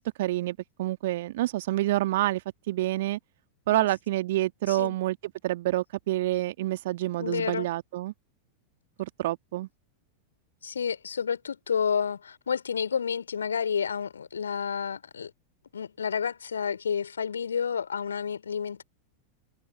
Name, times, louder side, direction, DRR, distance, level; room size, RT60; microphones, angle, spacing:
voice 1, 0.0-2.4 2.7-3.2 3.7-5.2 5.4-8.1 9.0-9.7, right 16 dB, 55° right, 2.0 m, -28 dB
voice 2, 7.2-7.7 10.6-15.3 15.7-18.8, left 7 dB, 70° left, 4.5 m, -30 dB
figure-of-eight pair, 90°, 0 cm